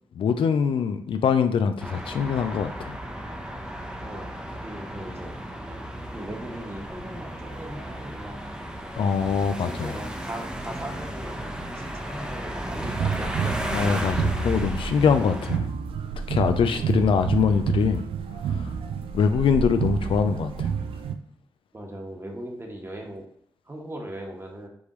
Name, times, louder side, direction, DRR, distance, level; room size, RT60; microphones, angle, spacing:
voice 1, 0.2-3.0 9.0-9.9 13.7-15.7 16.3-18.0 18.5-18.7 19.1-20.7, left 6 dB, 75° left, 8 dB, 0.4 m, -23 dB
sound 1, 1.8-15.6, equal, 10° right, 0.8 m, -34 dB
voice 2, 4.6-5.3 5.7-5.8 6.1-8.4 9.6-11.5 11.7-13.6 16.6-16.9 21.7-23.3 23.6-24.7, right 1 dB, 30° right, 1 dB, 1.3 m, -38 dB
sound 2, 12.8-21.2, right 6 dB, 90° right, 0.4 m, -29 dB
5.2 x 3.3 x 3.1 m, 0.68 s
cardioid pair, 45°, 9 cm